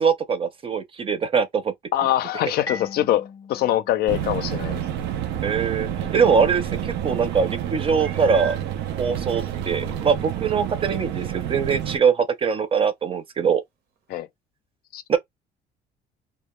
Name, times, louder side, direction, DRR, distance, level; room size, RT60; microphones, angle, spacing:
voice 1, 0.0-1.7 5.4-8.6 9.0-13.6 15.1-15.2, right 6 dB, 30° right, 0.6 m, -22 dB
voice 2, 1.9-4.8 9.1-9.2 14.1-14.3 14.9-15.0, left 13 dB, 70° left, 0.5 m, -23 dB
Marimba xylophone, 2.7-5.3, left 3 dB, 20° left, 0.5 m, -40 dB
sound 1, 4.1-12.0, right 10 dB, 85° right, 0.4 m, -29 dB
Meow, 8.0-8.7 9.5-9.6 10.1-10.2 14.1-14.2, right 7 dB, 65° right, 0.8 m, -37 dB
2.3 x 2.1 x 3.0 m
cardioid pair, 110°, 17 cm